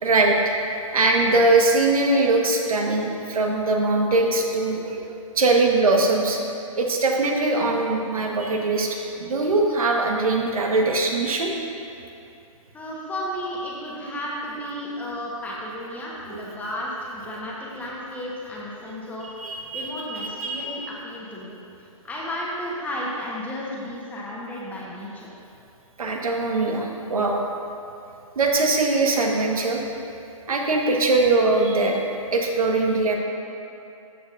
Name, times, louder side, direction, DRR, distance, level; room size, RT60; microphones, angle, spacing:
voice 1, 0.0-0.4 0.9-5.0 5.3-6.4 6.7-11.5 16.3-16.4 19.2-20.6 26.0-27.4 28.3-29.8 30.5-32.0 32.3-33.2, right 2 dB, 85° right, 1 dB, 1.3 m, -21 dB
voice 2, 12.7-21.5 21.8-25.3, left 1 dB, 10° left, -5 dB, 1.2 m, -33 dB
13.0 x 6.9 x 2.6 m, 2.7 s
hypercardioid pair, 145°, 18 cm